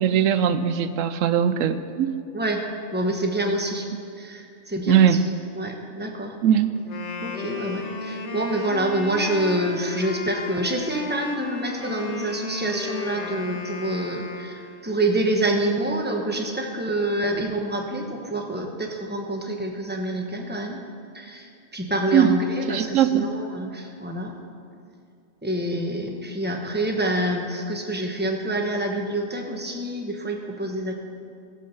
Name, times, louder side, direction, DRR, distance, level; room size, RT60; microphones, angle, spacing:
voice 1, 0.0-2.2 4.9-5.2 6.4-6.7 22.1-22.4 22.7-23.3, right 9 dB, 90° right, 11 dB, 1.0 m, -20 dB
voice 2, 2.9-3.9 4.2-5.2 5.6-6.3 7.2-20.8 21.1-24.4 25.4-30.9, right 1 dB, 10° right, 2 dB, 1.1 m, -27 dB
Wind instrument woodwind instrument, 6.8-14.9, left 4 dB, 65° left, 1.4 m, -34 dB
16.5 x 7.7 x 5.6 m, 2.4 s
omnidirectional pair, 1.3 m